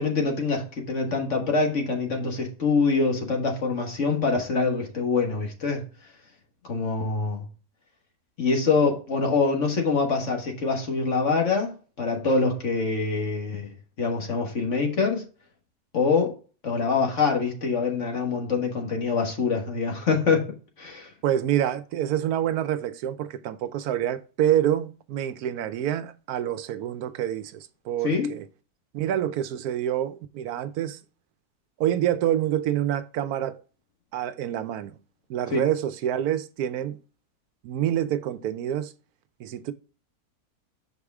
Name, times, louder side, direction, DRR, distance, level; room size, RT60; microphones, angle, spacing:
voice 1, 0.0-5.8 6.6-7.5 8.4-13.7 14.0-15.2 15.9-16.4 16.6-21.1 28.0-28.3 35.5-35.6, left 4 dB, 50° left, 1.7 m, -25 dB
voice 2, 21.2-28.5 28.9-31.0 31.8-33.6 34.1-34.9 35.3-37.0 37.6-38.9 39.4-39.7, right 11 dB, 75° right, 1.1 m, -27 dB
6.2 x 4.8 x 3.4 m
omnidirectional pair, 1.6 m